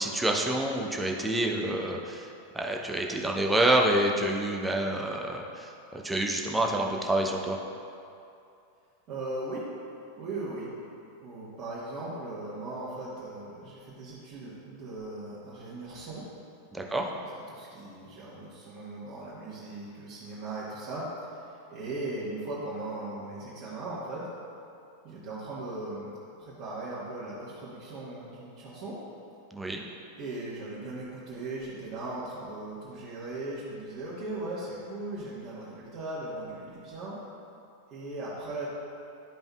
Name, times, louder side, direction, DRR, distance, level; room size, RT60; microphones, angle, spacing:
voice 1, 0.0-7.6 16.7-17.0 29.5-29.8, right 1 dB, 5° right, 0 dB, 0.7 m, -28 dB
voice 2, 9.1-9.6 10.2-10.7 11.2-16.2 16.8-24.3 25.0-26.1 26.4-29.0 30.2-37.2 37.9-38.7, right 2 dB, 40° right, -10 dB, 1.5 m, -38 dB
12.0 x 5.2 x 2.4 m, 2.6 s
figure-of-eight pair, 90°, 0 cm